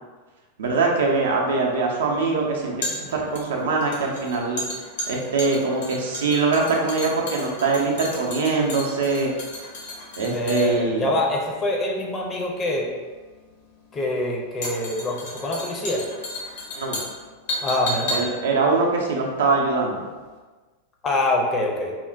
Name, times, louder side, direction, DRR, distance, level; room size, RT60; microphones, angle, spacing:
voice 1, 0.6-4.6 5.1-9.3 10.2-11.1 16.7-17.0 18.1-20.0, right 3 dB, 65° right, -1 dB, 0.5 m, -23 dB
sound 1, 0.7-19.9 20.2-20.3, left 1 dB, 55° left, 0.7 m, -34 dB
voice 2, 10.2-12.9 13.9-16.1 17.6-18.2 21.0-21.9, left 1 dB, 20° left, -1 dB, 0.5 m, -25 dB
4.2 x 2.0 x 2.5 m, 1.3 s
figure-of-eight pair, 90°, 0 cm